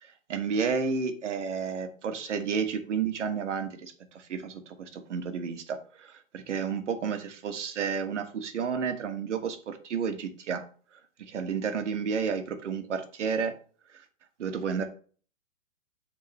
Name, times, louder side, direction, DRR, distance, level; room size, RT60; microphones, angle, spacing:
voice 1, 0.0-10.6 11.2-13.5 13.9-14.0 14.4-14.8, right 6 dB, 65° right, 7 dB, 1.3 m, -31 dB
9.2 x 3.7 x 3.2 m, 0.41 s
figure-of-eight pair, 120°, 39 cm